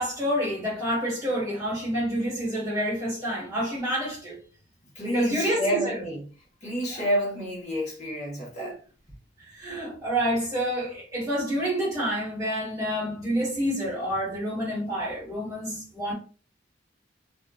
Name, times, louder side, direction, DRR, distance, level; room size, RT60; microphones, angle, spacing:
voice 1, 0.0-4.4 5.0-6.0 6.9-7.0 8.6-8.7 9.5-16.1, equal, 15° right, 1.2 m, -28 dB
voice 2, 4.9-6.2 6.6-8.8, equal, 40° left, 1.0 m, -29 dB
2.7 x 2.3 x 2.3 m
head